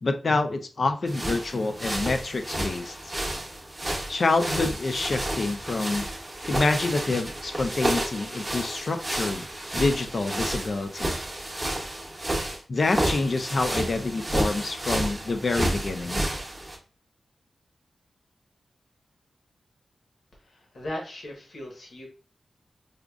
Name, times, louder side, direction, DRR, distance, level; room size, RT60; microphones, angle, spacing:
voice 1, 0.0-3.1 4.1-6.1 6.5-9.4 9.7-11.2 12.7-16.2, left 3 dB, 50° left, 8 dB, 0.4 m, -27 dB
sound 1, 1.1-16.8, right 1 dB, 15° right, 0.8 m, -31 dB
voice 2, 20.4-22.1, left 1 dB, 65° left, -1 dB, 1.2 m, -38 dB
4.9 x 2.4 x 2.3 m, 0.38 s
wide cardioid pair, 150°, 0 cm